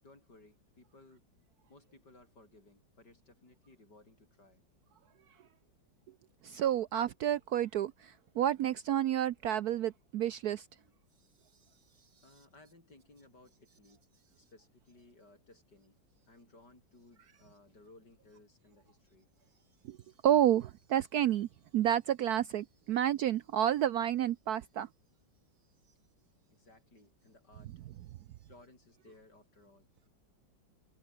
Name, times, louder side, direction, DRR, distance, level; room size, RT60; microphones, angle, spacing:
voice 1, 0.0-1.2 1.7-4.6 5.6-5.7 12.2-14.1 14.4-16.0 16.3-19.3 26.5-27.7 28.5-29.9, left 2 dB, 60° left, 7.5 m, -60 dB
voice 2, 6.4-10.7 19.8-20.0 20.2-21.5 21.7-24.9, right 11 dB, 70° right, 1.0 m, -30 dB
omnidirectional pair, 2.0 m